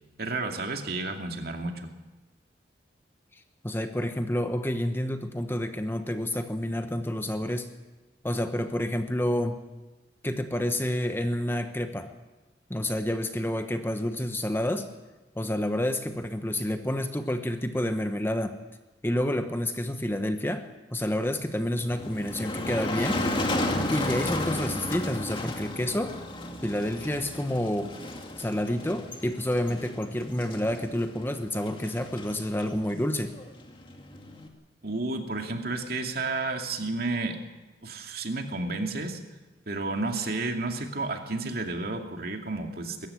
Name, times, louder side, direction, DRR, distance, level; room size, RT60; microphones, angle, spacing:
voice 1, 0.2-1.9 34.8-37.4 37.8-39.2 39.7-43.1, right 3 dB, 55° right, 4 dB, 2.5 m, -31 dB
voice 2, 3.3-7.7 8.2-9.6 10.2-12.1 12.7-14.9 15.4-18.6 19.0-23.3 23.9-26.2 26.6-28.0 28.4-33.4, left 1 dB, 10° left, 7 dB, 1.0 m, -29 dB
Motor vehicle (road), 21.8-34.5, left 1 dB, 25° left, 2.3 m, -34 dB
22.0 x 14.5 x 9.9 m, 1.2 s
head